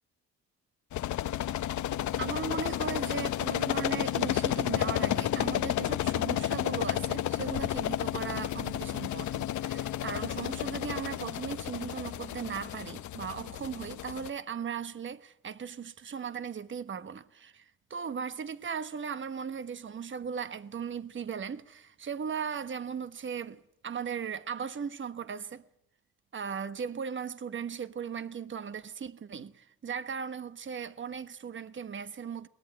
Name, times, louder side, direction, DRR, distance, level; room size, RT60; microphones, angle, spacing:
sound 1, 0.9-14.3, left 12 dB, 70° left, 1.0 m, -32 dB
voice 1, 2.2-25.6 26.3-32.5, right 7 dB, 40° right, 1.2 m, -37 dB
22.0 x 19.5 x 7.8 m
cardioid pair, 90°, 30 cm